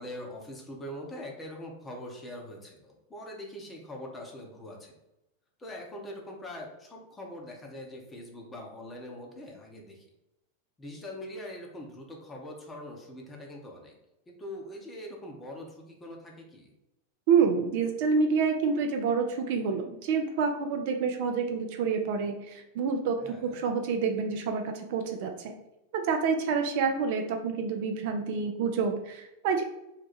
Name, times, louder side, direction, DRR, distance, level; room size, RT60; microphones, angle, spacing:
voice 1, 0.0-4.9 5.6-10.1 10.8-13.9 14.3-16.7 23.2-23.6, left 1 dB, 15° left, 0 dB, 0.8 m, -43 dB
voice 2, 17.3-25.5 25.9-29.6, right 5 dB, 50° right, 5 dB, 0.4 m, -28 dB
2.9 x 2.1 x 4.1 m, 0.92 s
figure-of-eight pair, 90°, 0 cm